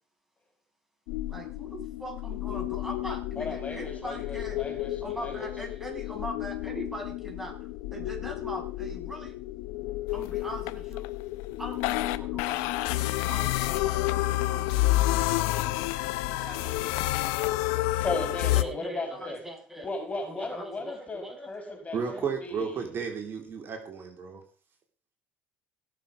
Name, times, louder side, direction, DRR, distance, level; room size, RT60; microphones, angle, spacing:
sound 1, 1.1-18.6, left 17 dB, 70° left, 0.9 m, -30 dB
voice 1, 1.3-9.4 10.1-11.1 11.6-14.9 16.3-17.2 18.5-19.9 20.2-21.8 22.1-22.2, right 1 dB, 5° right, 6.7 m, -41 dB
voice 2, 3.3-5.5 17.9-19.4 19.8-22.7, left 3 dB, 25° left, 5.0 m, -36 dB
voice 3, 21.9-24.4, right 6 dB, 45° right, 3.7 m, -33 dB
18.0 x 7.3 x 5.3 m
hypercardioid pair, 70°, 6 cm